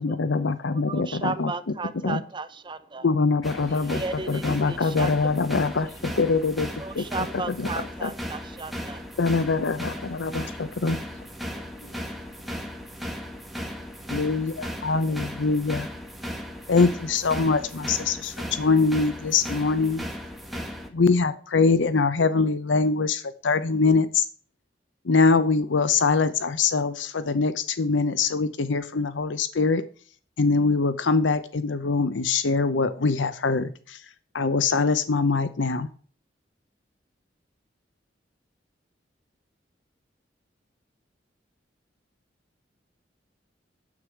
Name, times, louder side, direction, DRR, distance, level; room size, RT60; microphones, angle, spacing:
voice 1, 0.0-1.5 2.0-2.2 3.0-4.0 4.3-6.7 7.0-7.1 7.6-7.7 8.0-8.1 9.2-11.0 14.1-15.9 16.7-20.0 20.9-24.3 25.0-29.8 30.4-34.0 34.3-35.9, left 4 dB, 90° left, 13 dB, 0.7 m, -23 dB
voice 2, 0.9-3.0 3.8-5.2 6.8-9.1, right 3 dB, 25° right, 12 dB, 0.7 m, -35 dB
sound 1, 3.4-20.9, equal, ahead, 1.7 m, -36 dB
voice 3, 10.9-12.0 12.4-12.7, left 2 dB, 70° left, 6 dB, 2.2 m, -53 dB
9.6 x 8.0 x 4.6 m, 0.43 s
head